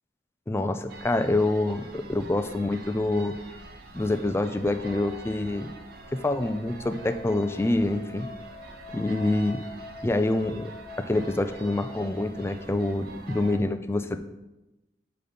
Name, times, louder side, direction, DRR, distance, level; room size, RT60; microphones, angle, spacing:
voice 1, 0.5-3.3 3.9-5.7 6.1-8.3 8.9-9.6 10.0-10.7 11.1-14.2, left 2 dB, 15° left, 9 dB, 0.4 m, -26 dB
sound 1, 0.9-13.6, right 3 dB, 60° right, 0.8 m, -46 dB
sound 2, 5.1-12.5, left 3 dB, ahead, 1.4 m, -46 dB
6.9 x 4.0 x 5.1 m, 0.99 s
head